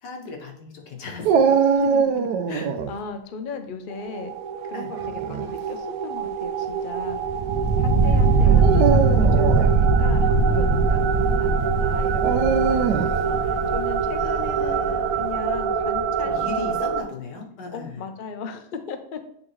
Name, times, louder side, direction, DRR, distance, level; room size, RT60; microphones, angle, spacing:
voice 1, 0.0-1.9 2.5-2.7 4.7-4.9 7.8-8.7 14.1-15.2 16.2-18.0, left 4 dB, 85° left, 1 dB, 1.8 m, -38 dB
Dog, 1.2-2.9 5.0-5.5 6.3-6.4 8.5-9.7 12.2-13.2, right 6 dB, 85° right, 1.2 m, -22 dB
voice 2, 1.7-4.3 4.6-7.2 7.8-16.9 17.7-19.2, left 5 dB, 60° left, 7 dB, 0.5 m, -37 dB
sound 1, 3.9-17.0, right 4 dB, 60° right, 1.0 m, -22 dB
8.6 x 3.8 x 3.2 m, 0.72 s
omnidirectional pair, 1.8 m